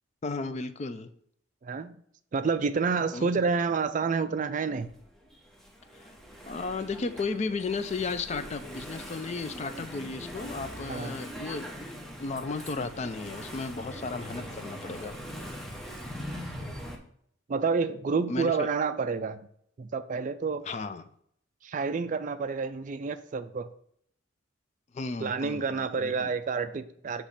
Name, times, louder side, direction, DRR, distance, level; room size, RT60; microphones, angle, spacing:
voice 1, 0.2-1.1 3.1-3.3 5.9-6.1 6.5-11.7 12.2-15.1 18.3-18.7 20.6-21.0 24.9-26.3, left 4 dB, 35° left, 11 dB, 0.3 m, -34 dB
voice 2, 1.6-2.0 2.3-4.9 10.9-11.1 17.5-19.5 19.8-20.6 21.6-23.7 25.2-27.3, right 5 dB, 40° right, 11 dB, 0.3 m, -29 dB
Engine / Mechanisms, 4.8-17.0, equal, ahead, 0.7 m, -41 dB
6.6 x 3.0 x 5.6 m, 0.66 s
head